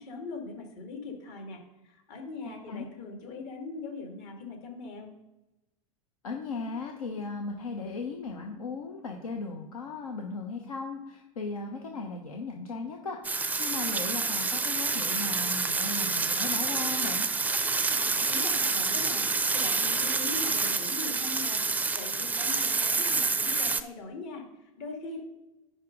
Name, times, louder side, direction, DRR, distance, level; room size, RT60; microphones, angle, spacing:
voice 1, 0.0-5.1 17.9-25.2, left 3 dB, 55° left, 2 dB, 2.4 m, -41 dB
voice 2, 6.2-17.3, left 4 dB, 75° left, 2 dB, 1.1 m, -37 dB
sound 1, 13.2-23.8, right 4 dB, 10° right, 0.5 m, -28 dB
10.0 x 3.6 x 5.2 m, 0.98 s
figure-of-eight pair, 90°, 18 cm